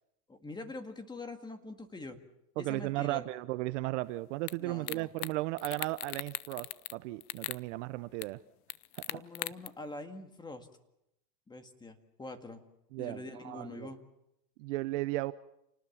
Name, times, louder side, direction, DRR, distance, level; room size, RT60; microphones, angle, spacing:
voice 1, 0.3-2.2 2.6-3.3 4.6-5.1 9.1-10.7 11.5-12.6 13.0-14.0, left 2 dB, 10° left, 7 dB, 1.9 m, -44 dB
voice 2, 2.6-8.4 9.0-9.2 12.9-13.9 14.6-15.3, right 19 dB, 45° right, 14 dB, 0.8 m, -35 dB
sound 1, 4.5-4.6 4.9-5.3 5.6-6.9 7.2-7.6 8.2-8.3 8.7-9.7, left 17 dB, 60° left, 0.9 m, -38 dB
28.5 x 19.5 x 7.2 m, 0.85 s
supercardioid pair, 145°, 49 cm